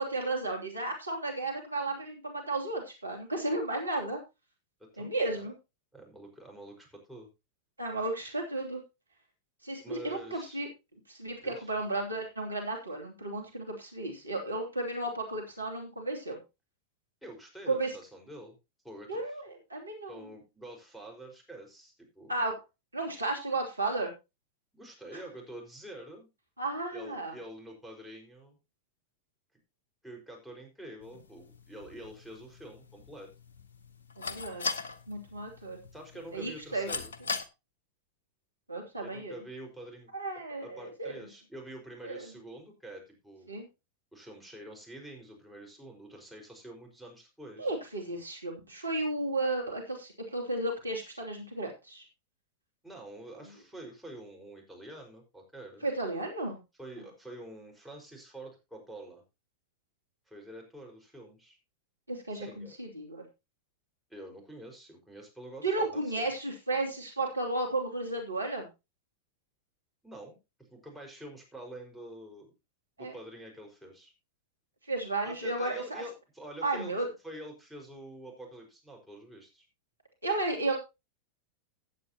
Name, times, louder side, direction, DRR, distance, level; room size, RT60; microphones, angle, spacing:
voice 1, 0.0-4.2 5.0-5.5 7.8-8.8 9.6-10.7 11.1-16.4 17.7-17.9 19.1-20.2 22.3-22.6 22.9-24.1 26.6-27.3 34.2-34.7 35.1-35.8 36.3-36.9 38.7-39.3 40.1-41.2 42.0-42.3 43.5-43.7 47.6-52.0 55.8-56.6 62.1-63.2 65.6-68.7 73.0-73.1 74.9-76.0 76.6-77.1 80.2-80.8, right 2 dB, 80° right, 2 dB, 2.9 m, -33 dB
voice 2, 4.8-5.5 5.9-7.3 9.8-10.6 11.4-11.7 17.2-18.6 18.8-19.2 20.1-22.3 24.7-26.3 26.9-28.6 30.0-33.3 35.9-37.1 39.0-40.1 40.6-43.5 44.1-47.7 52.8-55.8 56.8-59.2 60.3-61.6 62.3-62.7 64.1-66.3 70.0-70.4 70.7-72.5 73.0-74.1 75.2-76.9 77.2-79.7, right 1 dB, ahead, -1 dB, 5.0 m, -47 dB
sound 1, 31.0-37.4, left 4 dB, 70° left, 1.2 m, -40 dB
15.5 x 9.3 x 2.9 m, 0.26 s
figure-of-eight pair, 90°, 0 cm